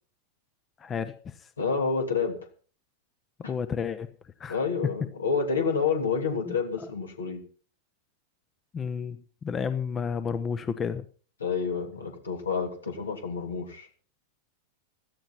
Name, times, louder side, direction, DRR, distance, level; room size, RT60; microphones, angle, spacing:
voice 1, 0.8-1.5 3.4-4.1 4.4-4.6 6.5-6.6 8.7-11.1, left 6 dB, 20° left, 13 dB, 0.9 m, -31 dB
voice 2, 1.6-2.4 3.4-3.5 4.5-7.4 11.4-13.9, left 5 dB, 70° left, 4 dB, 3.0 m, -28 dB
17.0 x 13.0 x 4.3 m, 0.40 s
figure-of-eight pair, 90°, 0 cm